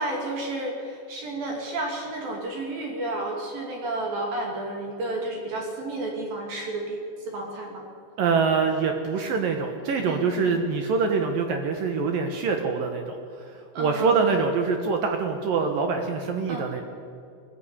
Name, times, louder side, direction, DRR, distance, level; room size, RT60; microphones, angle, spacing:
voice 1, 0.0-7.8 10.1-10.6 13.7-14.2 16.5-16.8, right 2 dB, 50° right, 1 dB, 3.8 m, -32 dB
voice 2, 8.2-13.2 13.4-16.8, right 5 dB, 70° right, 4 dB, 2.2 m, -25 dB
20.5 x 15.0 x 9.8 m, 2.4 s
omnidirectional pair, 5.9 m